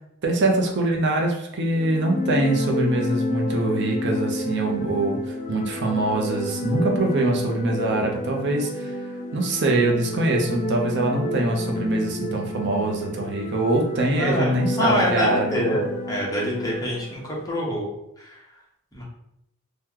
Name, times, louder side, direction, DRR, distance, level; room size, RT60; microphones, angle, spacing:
voice 1, 0.2-8.9 9.3-15.8, right 2 dB, 55° right, 1 dB, 0.6 m, -23 dB
sound 1, 1.7-17.4, left 1 dB, 35° left, 0.4 m, -30 dB
voice 2, 14.2-17.9 18.2-18.4 18.9-19.0, equal, 15° left, -5 dB, 0.9 m, -25 dB
2.9 x 2.2 x 3.6 m, 0.78 s
head